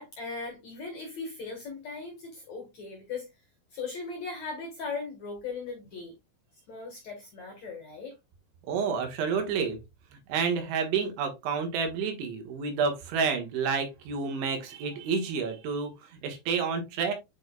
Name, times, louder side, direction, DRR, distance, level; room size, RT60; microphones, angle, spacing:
voice 1, 0.0-3.3 3.7-6.1 6.7-8.2, left 4 dB, 60° left, 2.0 m, -38 dB
voice 2, 8.7-9.8 10.3-17.1, right 5 dB, 90° right, 3.8 m, -29 dB
9.2 x 4.6 x 2.3 m
omnidirectional pair, 5.2 m